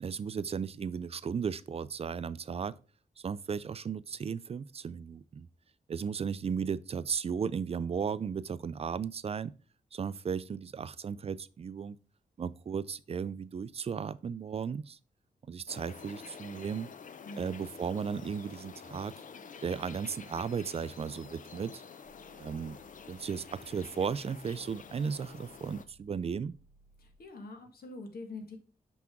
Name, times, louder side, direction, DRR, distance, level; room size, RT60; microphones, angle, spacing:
voice 1, 0.0-2.8 3.2-5.5 5.9-9.5 9.9-12.0 12.4-15.0 15.5-16.9 17.4-19.1 19.6-21.8 22.4-22.8 23.1-26.5, right 6 dB, 40° right, 0.4 m, -35 dB
sound 1, 15.7-25.8, left 6 dB, 60° left, 0.6 m, -49 dB
voice 2, 17.2-17.7 27.0-28.6, left 3 dB, 85° left, 1.7 m, -45 dB
sound 2, 22.0-27.3, equal, 30° left, 2.9 m, -64 dB
6.1 x 5.8 x 3.6 m
wide cardioid pair, 140°, 15 cm